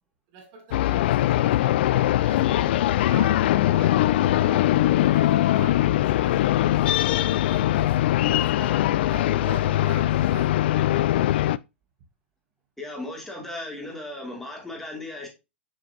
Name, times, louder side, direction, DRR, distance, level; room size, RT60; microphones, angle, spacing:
voice 1, 0.3-1.9 2.2-7.0 7.3-8.0 8.3-10.7, right 4 dB, 45° right, 1.8 m, -44 dB
sound 1, 0.7-11.6, left 14 dB, 60° left, 0.4 m, -21 dB
voice 2, 12.8-15.3, left 2 dB, 5° left, 3.0 m, -36 dB
6.9 x 6.5 x 3.0 m
hypercardioid pair, 110°, 6 cm